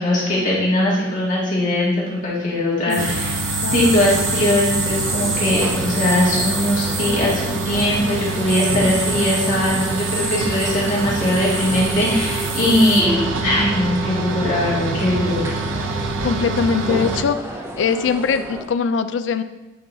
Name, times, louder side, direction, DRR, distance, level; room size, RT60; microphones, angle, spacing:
voice 1, 0.0-1.9 2.2-15.5, left 1 dB, 40° left, -6 dB, 2.0 m, -20 dB
sound 1, 2.9-13.0, right 3 dB, 55° right, 1.3 m, -28 dB
sound 2, 3.0-17.2, right 3 dB, 80° right, 0.6 m, -26 dB
sound 3, 5.0-18.7, right 1 dB, 10° right, 0.4 m, -33 dB
voice 2, 16.2-17.4 17.8-19.4, left 6 dB, 70° left, 11 dB, 0.3 m, -21 dB
8.5 x 5.4 x 2.7 m, 1.0 s
head